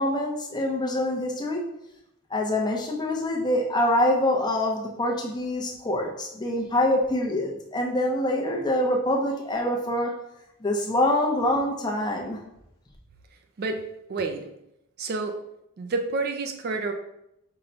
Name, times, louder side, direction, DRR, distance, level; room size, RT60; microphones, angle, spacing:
voice 1, 0.0-1.6 2.3-10.1 10.6-12.4, left 1 dB, 20° left, 0 dB, 0.6 m, -25 dB
voice 2, 14.1-14.4 15.0-15.3 15.8-16.9, right 3 dB, 45° right, 5 dB, 0.3 m, -29 dB
5.5 x 2.2 x 3.8 m, 0.82 s
head